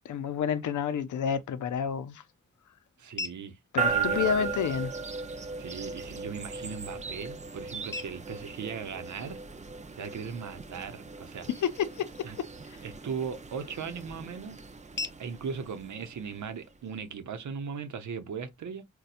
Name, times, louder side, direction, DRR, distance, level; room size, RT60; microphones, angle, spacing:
voice 1, 0.0-2.2 3.7-4.9 11.5-12.5, left 8 dB, 90° left, 0.5 m, -30 dB
sound 1, 1.4-17.4, left 3 dB, 40° left, 0.5 m, -48 dB
voice 2, 3.0-3.6 3.9-4.5 5.6-9.4 10.0-11.5 12.2-12.4 12.8-14.6 15.2-18.9, right 6 dB, 80° right, 0.7 m, -38 dB
sound 2, 3.8-16.8, right 5 dB, 25° right, 0.5 m, -37 dB
4.1 x 2.2 x 2.4 m
cardioid pair, 65°, 29 cm